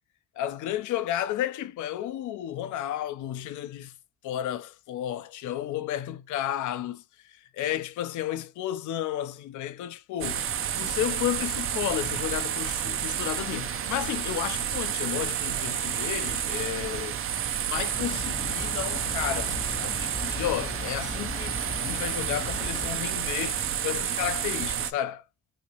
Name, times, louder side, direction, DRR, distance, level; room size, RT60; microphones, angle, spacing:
voice 1, 0.4-3.9 4.2-10.4 10.8-17.2 17.7-25.2, left 12 dB, 75° left, 0.5 m, -32 dB
sound 1, 10.2-24.9, right 9 dB, 45° right, 0.5 m, -30 dB
sound 2, 17.9-22.9, left 4 dB, 15° left, 0.4 m, -39 dB
2.9 x 2.9 x 2.8 m
cardioid pair, 90°, 30 cm